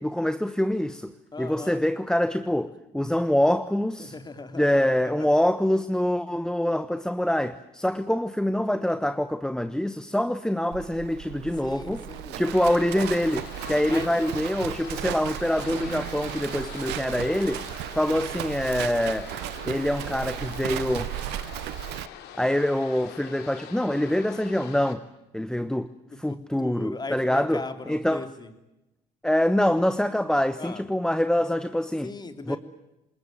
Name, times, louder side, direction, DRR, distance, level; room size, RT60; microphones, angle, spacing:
voice 1, 0.0-4.1 4.6-12.0 12.4-17.7 17.9-19.3 19.6-21.1 22.4-25.0 25.3-25.9 26.2-28.2 29.2-32.1 32.5-32.6, left 1 dB, 5° left, 1.1 m, -25 dB
voice 2, 1.3-1.8 4.0-4.9 5.2-5.3 7.4-7.5 11.6-12.4 13.9-14.3 26.0-28.5 30.6-30.8 32.0-32.6, left 3 dB, 25° left, 3.3 m, -39 dB
Livestock farm animals working animals, 10.7-22.1, right 16 dB, 85° right, 0.9 m, -35 dB
sound 1, 12.5-24.9, left 9 dB, 80° left, 3.0 m, -43 dB
27.5 x 20.5 x 9.1 m
cardioid pair, 90°, 17 cm